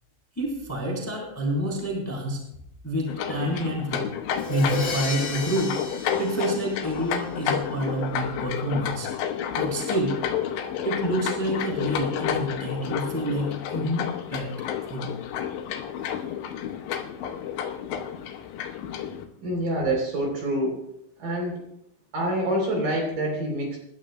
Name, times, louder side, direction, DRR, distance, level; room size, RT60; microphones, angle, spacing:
voice 1, 0.4-2.4 2.8-4.1 4.5-5.8 6.2-9.1 9.5-10.1 10.8-14.5 14.8-15.1, right 1 dB, 5° left, -3 dB, 2.9 m, -28 dB
sound 1, 3.1-19.3, left 9 dB, 85° left, 3.2 m, -31 dB
Crash cymbal, 4.3-7.3, left 4 dB, 35° left, 2.9 m, -33 dB
voice 2, 19.0-20.8 21.2-21.6 22.1-23.8, right 1 dB, 50° right, 0 dB, 4.9 m, -27 dB
27.0 x 12.5 x 2.2 m, 0.77 s
omnidirectional pair, 5.2 m